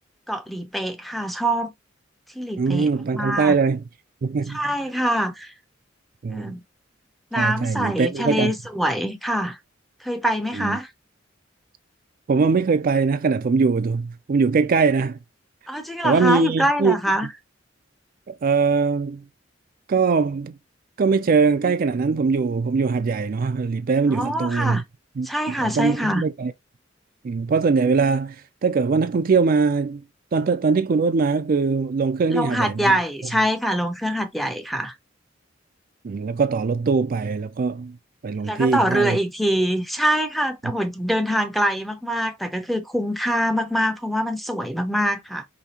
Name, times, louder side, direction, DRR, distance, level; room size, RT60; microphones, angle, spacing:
voice 1, 0.3-1.7 2.3-3.5 4.5-5.5 6.3-6.6 7.3-9.6 10.0-10.9 15.7-17.3 24.1-24.8 25.2-26.2 32.3-34.9 38.4-45.5, equal, ahead, 0.6 m, -24 dB
voice 2, 2.6-3.8 4.2-4.7 6.2-6.6 7.3-8.5 10.5-10.8 12.3-15.2 16.0-17.0 18.3-19.2 19.9-20.6 21.0-24.8 25.2-26.5 27.2-30.0 30.3-32.9 36.0-38.0 38.2-39.2 40.6-40.7, right 4 dB, 50° right, 0.4 m, -21 dB
5.1 x 2.8 x 2.8 m
head